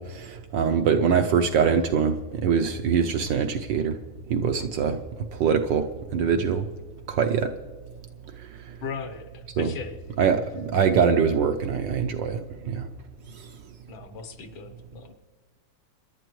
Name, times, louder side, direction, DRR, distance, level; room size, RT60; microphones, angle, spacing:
voice 1, 0.0-2.2 2.4-4.0 4.3-5.0 5.4-5.9 6.1-6.7 7.1-7.5 9.6-9.7 10.2-12.9, right 6 dB, 70° right, 5 dB, 1.1 m, -23 dB
voice 2, 8.8-10.0 13.9-15.1, left 5 dB, 70° left, 9 dB, 1.7 m, -37 dB
25.5 x 11.0 x 3.1 m, 1.4 s
omnidirectional pair, 2.4 m